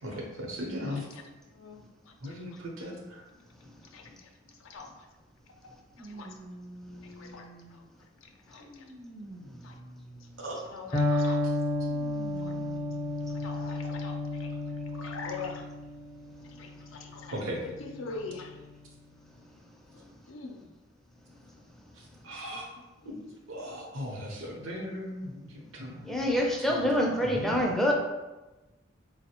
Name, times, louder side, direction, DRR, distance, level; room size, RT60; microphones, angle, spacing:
voice 1, 0.0-1.1 2.2-3.2 10.4-10.6 12.5-12.6 17.3-17.6 22.2-22.7 23.5-26.0 27.2-27.6, equal, 85° right, -1 dB, 0.8 m, -37 dB
voice 2, 0.8-2.6 3.9-5.1 5.5-6.3 7.0-7.8 8.2-8.9 9.3-9.8 10.2-10.3 10.6-11.4 12.4-12.5 13.3-14.5 14.9-15.7 16.4-17.3 17.6-18.6 19.9-20.7 22.5-23.3, left 4 dB, 80° left, 3 dB, 0.4 m, -45 dB
sound 1, 4.7-4.8 5.9-8.0 8.6-10.6 11.8-13.2 13.9-14.0 15.1-15.2, right 1 dB, 55° right, 0.6 m, -48 dB
Electric guitar, 10.9-18.8, left 2 dB, 40° left, 0.6 m, -32 dB
voice 3, 26.1-27.9, equal, ahead, -1 dB, 0.4 m, -26 dB
3.9 x 2.0 x 2.8 m, 1.1 s
head